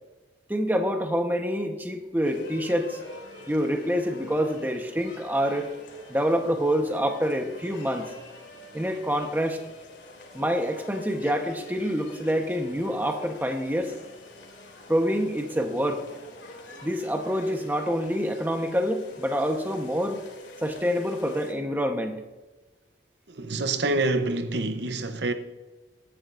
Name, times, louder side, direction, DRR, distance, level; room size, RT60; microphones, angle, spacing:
voice 1, 0.5-3.0 3.5-5.7 6.1-8.1 8.7-9.6 10.3-13.9 14.9-16.0 16.8-20.2 20.6-22.2, equal, 10° right, 1.0 m, -26 dB
sound 1, 2.2-21.5, left 2 dB, 90° left, 2.8 m, -46 dB
voice 2, 23.4-25.3, right 2 dB, 70° right, 0.8 m, -26 dB
17.5 x 11.5 x 2.6 m
head